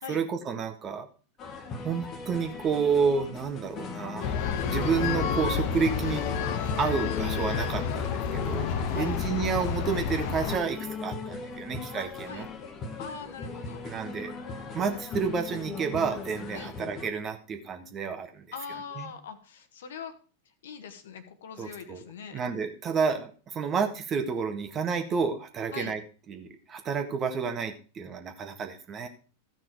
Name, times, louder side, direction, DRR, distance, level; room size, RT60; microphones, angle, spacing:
voice 1, 0.1-1.1 1.8-4.3 4.7-6.2 6.8-12.5 13.8-14.3 14.7-18.5 19.0-19.1 21.6-22.0 22.3-26.0 26.3-29.1, right 6 dB, 25° right, 6 dB, 1.6 m, -30 dB
sound 1, 1.4-17.1, left 4 dB, 30° left, 1.6 m, -39 dB
sound 2, 4.2-10.6, left 7 dB, 45° left, 1.1 m, -30 dB
voice 2, 12.0-12.5 13.0-13.8 16.5-16.7 18.5-20.1 20.6-22.4 25.7-25.9, left 6 dB, 60° left, 9 dB, 1.4 m, -42 dB
14.5 x 6.0 x 4.6 m, 0.37 s
figure-of-eight pair, 90°, 0 cm